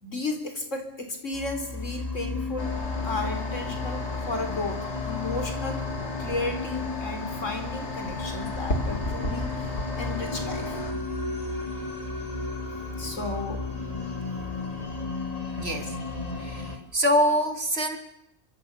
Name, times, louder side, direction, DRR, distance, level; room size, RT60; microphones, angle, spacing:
voice 1, 0.0-2.8 3.0-5.9 6.2-9.7 10.0-10.8 13.0-13.8 15.7-15.9, left 2 dB, 85° left, 6 dB, 4.6 m, -34 dB
sound 1, 1.3-16.8, left 3 dB, 30° left, 3.7 m, -34 dB
sound 2, 2.6-10.9, left 2 dB, 65° left, 3.8 m, -34 dB
voice 2, 15.6-16.0 16.4-18.0, equal, 55° right, 6 dB, 3.4 m, -25 dB
26.0 x 25.0 x 6.9 m, 0.80 s
omnidirectional pair, 1.3 m